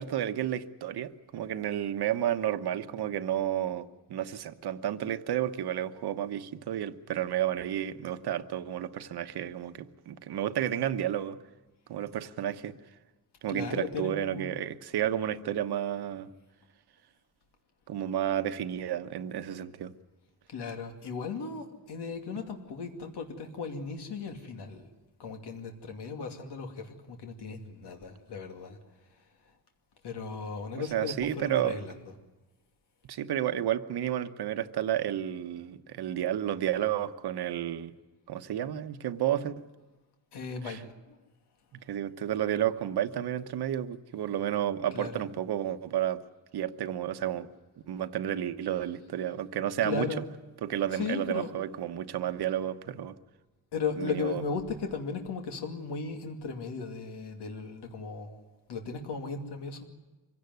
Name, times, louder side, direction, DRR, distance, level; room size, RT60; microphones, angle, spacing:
voice 1, 0.0-11.4 11.9-12.7 13.4-16.3 17.9-19.9 30.9-31.8 33.1-37.9 38.3-39.6 40.6-40.8 41.9-46.2 46.5-47.5 47.9-50.1 50.6-53.2 54.0-54.4, right 11 dB, 75° right, 10 dB, 1.2 m, -31 dB
voice 2, 13.5-14.5 20.5-24.9 25.2-28.8 30.0-31.9 40.3-41.2 44.9-45.2 49.8-50.3 50.9-51.5 53.7-59.9, left 5 dB, 85° left, 4 dB, 2.5 m, -36 dB
25.0 x 16.5 x 9.4 m, 1.2 s
wide cardioid pair, 170°, 39 cm